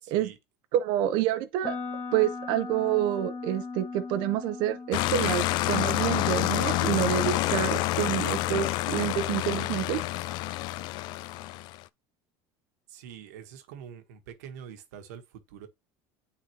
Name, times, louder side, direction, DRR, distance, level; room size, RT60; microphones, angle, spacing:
voice 1, 0.0-0.4 12.9-15.7, right 8 dB, 90° right, 1.2 m, -45 dB
voice 2, 0.7-1.8 2.1-10.0, right 12 dB, 65° right, 0.7 m, -28 dB
sound 1, 1.6-9.6, left 4 dB, 25° left, 1.6 m, -41 dB
sound 2, 4.9-11.8, left 17 dB, 60° left, 0.4 m, -28 dB
9.2 x 3.9 x 2.9 m
supercardioid pair, 130°, 8 cm